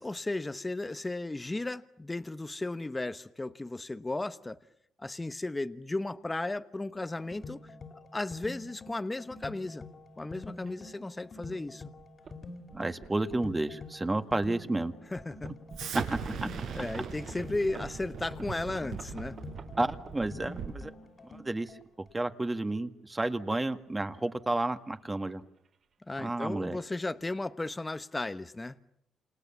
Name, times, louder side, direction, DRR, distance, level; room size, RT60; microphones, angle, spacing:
voice 1, 0.0-4.6 5.0-7.7 8.1-9.9 10.2-11.9 15.0-15.5 16.7-19.4 26.1-28.8, left 2 dB, 15° left, 12 dB, 1.1 m, -35 dB
sound 1, 6.9-21.8, left 3 dB, 40° left, 2.9 m, -47 dB
sound 2, 8.4-8.5 9.4-9.6 10.2-10.3 10.6-10.8 11.5-11.6 12.0-12.4 12.7-13.9 14.4-14.5 15.1-20.7 21.5-22.5 24.1-25.3 25.6-25.8 26.1-26.2 26.5-26.9, right 5 dB, 55° right, 4.0 m, -49 dB
voice 2, 12.7-14.9 16.1-16.5 19.8-20.9 21.4-21.7 22.1-25.4 26.2-26.8, right 2 dB, 15° right, 9 dB, 1.8 m, -31 dB
Explosion, 15.7-20.9, right 6 dB, 80° right, 5.7 m, -40 dB
29.0 x 28.5 x 7.2 m, 0.72 s
cardioid pair, 90°, 0 cm